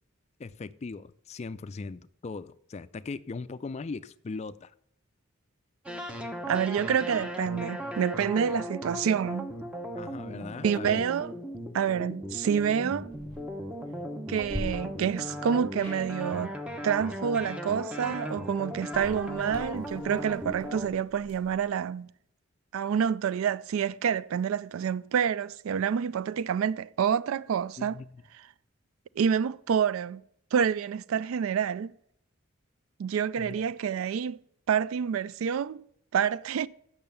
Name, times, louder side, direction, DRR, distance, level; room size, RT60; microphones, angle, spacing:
voice 1, 0.4-4.7 10.0-11.0 27.8-28.2 33.4-33.7, left 4 dB, 30° left, 0.3 m, -39 dB
sound 1, 5.9-20.9, equal, 5° right, 0.8 m, -37 dB
voice 2, 6.5-9.5 10.6-11.3 11.7-13.1 14.3-16.5 16.8-22.1 22.7-27.9 29.2-30.2 30.5-31.9 33.0-34.4 34.7-35.8 36.1-36.7, right 7 dB, 75° right, 0.3 m, -28 dB
sound 2, 13.1-13.4 14.4-14.6 15.7-16.0 18.8-21.6, left 1 dB, 25° right, 3.9 m, -43 dB
8.7 x 6.4 x 6.8 m
head